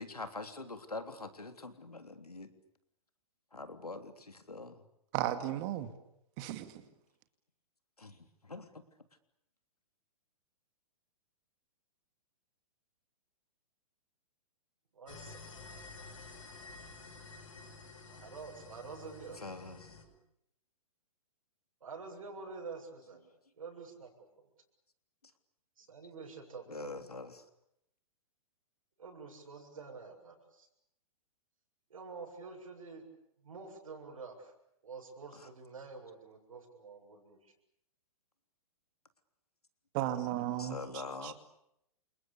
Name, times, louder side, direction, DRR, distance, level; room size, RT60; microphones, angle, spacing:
voice 1, 0.0-2.5 3.5-4.8 8.0-8.8 19.3-20.0 26.7-27.4 35.3-35.5 40.6-41.3, left 3 dB, 80° left, 3.3 m, -44 dB
voice 2, 5.1-5.9 6.4-6.8 39.9-40.8 41.2-41.3, right 13 dB, 35° right, 2.3 m, -34 dB
voice 3, 14.9-15.5 18.1-19.4 21.8-23.2 23.6-24.5 25.8-26.9 29.0-30.7 31.9-33.0 33.4-34.5 34.8-37.5, right 4 dB, 65° right, 7.3 m, -48 dB
sound 1, 15.1-20.1, left 3 dB, 55° left, 7.4 m, -51 dB
29.5 x 28.0 x 6.9 m
figure-of-eight pair, 115°, 19 cm